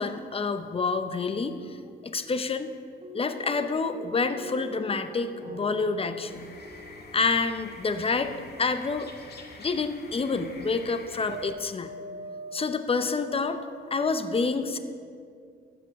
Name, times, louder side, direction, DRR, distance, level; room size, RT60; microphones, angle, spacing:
voice 1, 0.0-2.7 3.1-6.5 7.1-8.3 8.6-9.1 9.6-11.9 12.5-13.6 13.9-14.8, left 4 dB, 30° left, 9 dB, 0.8 m, -28 dB
sound 1, 3.0-8.1 9.7-9.9 11.3-14.1, equal, 30° right, 1.1 m, -43 dB
sound 2, 6.3-11.5, left 3 dB, 55° left, 1.8 m, -47 dB
13.5 x 5.2 x 8.1 m, 2.3 s
cardioid pair, 90°, 20 cm